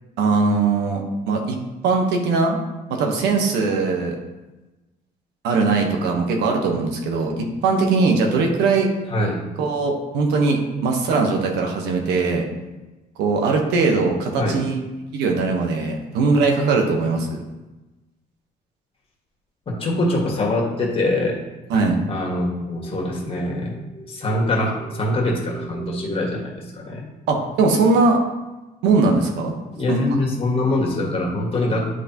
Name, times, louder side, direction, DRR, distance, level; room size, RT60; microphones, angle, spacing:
voice 1, 0.2-1.6 1.8-2.6 3.0-4.1 5.4-8.9 9.6-12.5 13.2-14.8 15.1-17.4 21.7-22.0 27.3-28.2 28.8-29.5 29.9-30.0, right 4 dB, 85° right, 2 dB, 1.1 m, -20 dB
voice 2, 19.7-21.4 22.1-27.1 29.7-31.9, left 1 dB, 35° left, -2 dB, 1.7 m, -23 dB
10.0 x 3.4 x 2.9 m, 1.1 s
cardioid pair, 110°, 17 cm